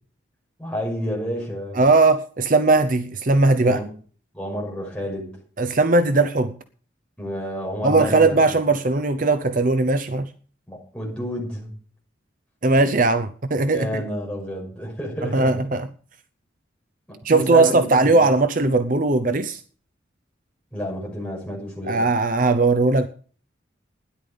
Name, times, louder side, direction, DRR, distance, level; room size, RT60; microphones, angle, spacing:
voice 1, 0.6-1.8 3.6-3.9 4.3-5.4 7.2-8.6 10.7-11.7 13.7-15.7 17.1-18.2 20.7-22.1, equal, 5° left, 5.9 m, -30 dB
voice 2, 1.8-3.8 5.6-6.5 7.8-10.3 12.6-14.0 15.3-15.9 17.2-19.6 21.9-23.1, right 3 dB, 45° right, 0.7 m, -19 dB
12.5 x 10.5 x 5.3 m
head